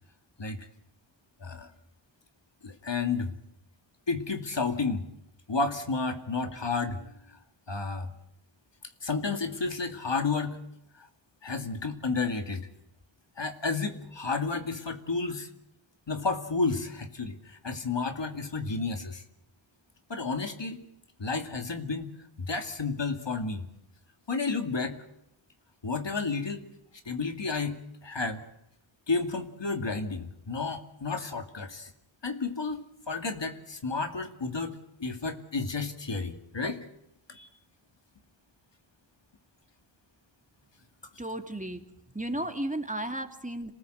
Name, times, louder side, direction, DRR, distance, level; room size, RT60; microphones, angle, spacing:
voice 1, 2.6-3.3 4.1-5.0 5.5-7.1 7.7-8.1 9.0-10.6 11.0-11.1 11.4-12.7 13.4-15.5 16.1-19.2 20.1-20.8 21.2-22.1 22.4-23.6 24.3-25.0 25.8-26.6 27.1-28.4 29.1-31.9 32.2-36.9 37.3-37.5, left 4 dB, 60° left, 6 dB, 2.4 m, -31 dB
voice 2, 41.2-41.8 42.1-43.7, right 1 dB, 15° right, 6 dB, 2.5 m, -34 dB
27.0 x 19.0 x 8.0 m, 0.81 s
wide cardioid pair, 60°, 49 cm